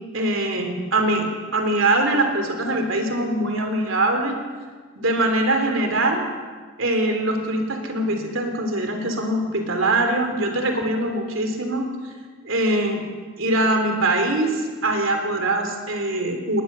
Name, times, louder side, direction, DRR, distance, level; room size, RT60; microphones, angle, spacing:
voice 1, 0.1-1.3 1.5-4.4 4.9-6.2 6.8-11.9 12.4-13.0 13.4-16.6, right 2 dB, 65° right, 4 dB, 3.3 m, -22 dB
20.5 x 20.0 x 6.9 m, 1.5 s
head